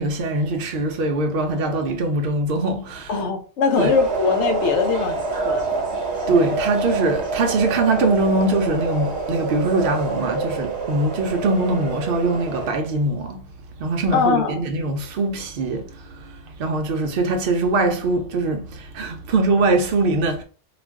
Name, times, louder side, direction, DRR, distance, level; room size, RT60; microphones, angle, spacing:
voice 1, 0.0-3.2 3.8-3.9 6.3-13.5 13.8-20.4, right 2 dB, 60° right, 0.7 m, -22 dB
voice 2, 3.1-5.8 14.1-14.6, left 5 dB, 90° left, 1.0 m, -21 dB
sound 1, 3.8-12.7, right 3 dB, 75° right, 1.0 m, -27 dB
2.4 x 2.2 x 3.3 m
omnidirectional pair, 1.1 m